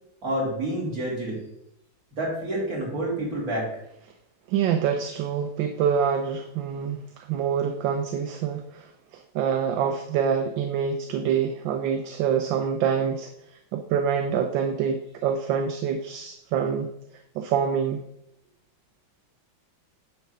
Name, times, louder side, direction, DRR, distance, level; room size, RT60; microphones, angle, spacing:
voice 1, 0.2-1.4 2.1-3.7, right 1 dB, 45° right, -4 dB, 3.4 m, -28 dB
voice 2, 4.5-13.3 13.7-16.9 17.3-18.0, right 7 dB, 75° right, 6 dB, 1.3 m, -26 dB
10.0 x 3.5 x 6.5 m, 0.79 s
omnidirectional pair, 2.2 m